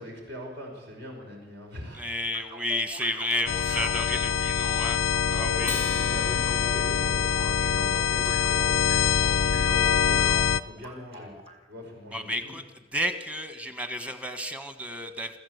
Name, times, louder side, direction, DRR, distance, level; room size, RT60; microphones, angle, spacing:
voice 1, 0.0-2.0 5.3-8.7 9.1-11.3 11.7-12.5, equal, 60° right, 1 dB, 5.4 m, -41 dB
voice 2, 1.9-5.7 12.1-12.6 12.9-15.4, left 1 dB, 5° right, 9 dB, 1.4 m, -32 dB
sound 1, 2.3-11.6, right 1 dB, 30° right, 2.3 m, -45 dB
sound 2, 3.5-10.6, left 7 dB, 85° left, 0.6 m, -24 dB
Acoustic guitar, 5.6-8.3, left 3 dB, 10° left, 0.6 m, -39 dB
25.0 x 14.5 x 8.1 m, 1.3 s
head